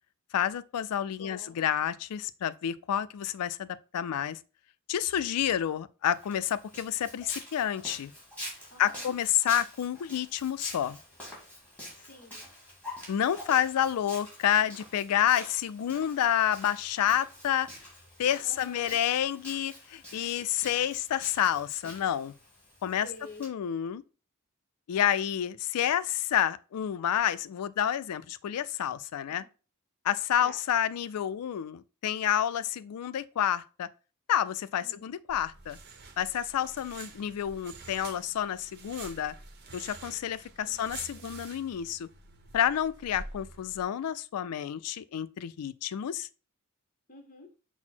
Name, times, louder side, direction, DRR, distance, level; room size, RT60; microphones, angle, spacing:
voice 1, 0.3-4.4 4.9-8.1 8.8-11.0 13.1-17.7 18.2-22.3 22.8-23.1 23.4-24.0 24.9-29.4 30.0-33.9 34.3-35.8 36.2-39.3 39.7-42.1 42.5-46.3, left 10 dB, 85° left, 0.3 m, -29 dB
voice 2, 1.2-1.6 8.7-9.1 11.9-12.4 15.9-16.2 18.4-19.0 23.0-23.4 29.3-29.5 30.4-30.6 34.7-35.1 40.6-41.3 47.1-47.5, left 2 dB, 40° left, 1.0 m, -49 dB
Walk footsteps, 6.0-23.5, left 1 dB, 5° left, 2.1 m, -46 dB
sound 1, 35.3-43.8, right 3 dB, 50° right, 0.8 m, -48 dB
6.0 x 2.1 x 4.4 m
head